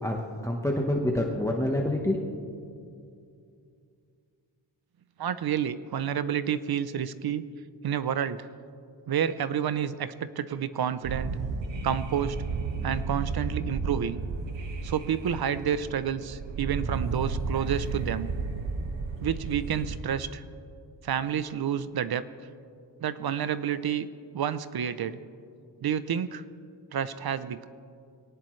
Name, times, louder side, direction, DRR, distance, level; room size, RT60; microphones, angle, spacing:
voice 1, 0.0-2.2 2.5-2.6, left 1 dB, 5° left, 0 dB, 1.2 m, -27 dB
voice 2, 5.2-7.4 7.8-8.5 9.1-11.4 11.8-12.4 12.8-14.2 14.8-18.3 19.2-20.4 21.0-22.2 23.0-24.1 24.3-25.2 25.8-26.4 26.9-27.7, right 8 dB, 55° right, 14 dB, 0.7 m, -29 dB
sound 1, 11.0-20.0, right 4 dB, 80° right, 1.5 m, -33 dB
23.0 x 18.0 x 3.2 m, 2.4 s
wide cardioid pair, 115°, 44 cm